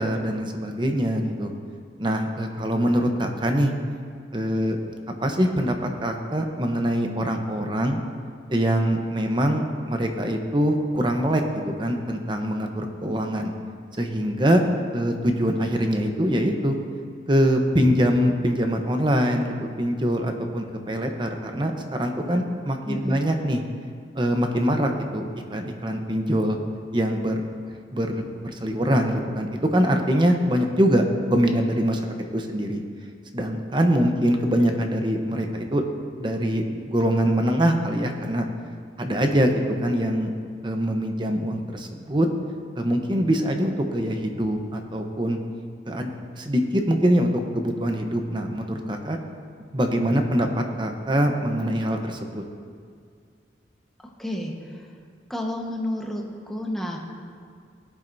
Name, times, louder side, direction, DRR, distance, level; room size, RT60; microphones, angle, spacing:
voice 1, 0.0-1.5 2.0-3.7 4.3-4.8 5.2-8.0 8.5-13.5 14.0-14.6 14.9-16.8 17.3-23.6 24.2-26.6 26.9-27.4 27.9-31.0 31.3-32.8 33.3-35.8 36.2-38.4 39.0-40.3 40.6-42.3 42.7-45.4 45.9-46.1 46.4-49.2 49.7-52.4, equal, 25° right, 4 dB, 0.9 m, -23 dB
voice 2, 22.9-23.4 54.2-54.5 55.3-57.0, left 1 dB, ahead, -1 dB, 1.2 m, -30 dB
18.0 x 11.0 x 2.7 m, 2.2 s
head